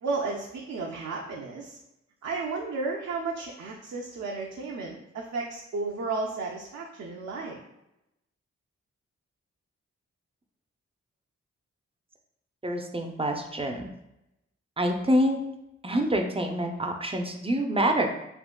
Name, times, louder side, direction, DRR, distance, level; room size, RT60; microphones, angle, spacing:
voice 1, 0.0-1.8 2.2-7.6, right 3 dB, 65° right, -2 dB, 0.5 m, -33 dB
voice 2, 12.6-13.9 14.8-15.4 15.8-18.1, equal, 20° right, 4 dB, 0.5 m, -26 dB
3.6 x 2.7 x 2.2 m, 0.87 s
supercardioid pair, 40°, 29 cm